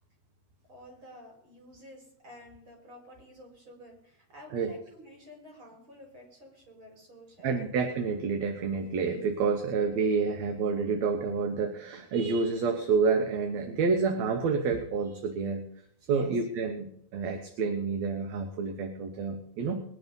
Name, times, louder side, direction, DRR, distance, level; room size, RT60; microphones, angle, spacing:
voice 1, 0.7-7.7 16.1-16.3, equal, 40° right, 0 dB, 5.6 m, -50 dB
voice 2, 7.4-15.7 16.1-19.8, right 5 dB, 70° right, 5 dB, 2.3 m, -29 dB
21.5 x 10.0 x 5.4 m, 0.71 s
omnidirectional pair, 3.3 m